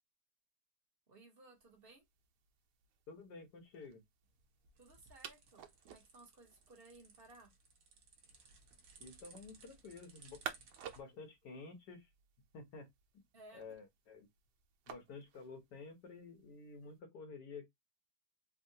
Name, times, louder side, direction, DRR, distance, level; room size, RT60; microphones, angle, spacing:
voice 1, 1.1-2.0 4.8-7.5 13.3-13.7, right 2 dB, 40° right, 1.0 m, -60 dB
sound 1, 1.5-17.0, right 8 dB, 85° right, 1.2 m, -55 dB
voice 2, 3.1-4.0 9.0-10.4 10.9-12.1 12.5-12.9 13.5-14.3 14.9-17.7, left 4 dB, 85° left, 1.4 m, -51 dB
sound 2, 4.2-11.0, right 4 dB, 65° right, 1.1 m, -62 dB
3.6 x 2.1 x 2.6 m
omnidirectional pair, 1.7 m